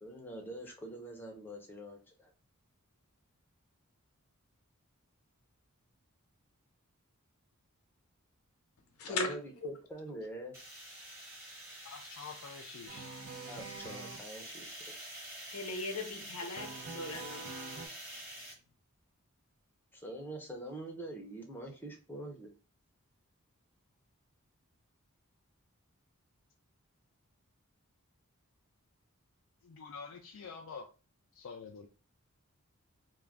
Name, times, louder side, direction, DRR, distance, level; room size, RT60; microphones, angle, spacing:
voice 1, 0.0-2.3 9.0-10.5 13.3-14.9 19.9-22.5, right 1 dB, 10° left, 0.6 m, -45 dB
sound 1, 10.5-18.5, right 1 dB, 15° right, 0.9 m, -47 dB
voice 2, 11.8-13.1 29.6-30.9 31.3-31.9, left 5 dB, 60° left, 0.4 m, -47 dB
sound 2, 12.9-14.2 16.6-17.9, right 4 dB, 65° right, 0.5 m, -45 dB
voice 3, 15.5-17.4, left 3 dB, 90° left, 0.7 m, -37 dB
2.4 x 2.1 x 3.3 m
head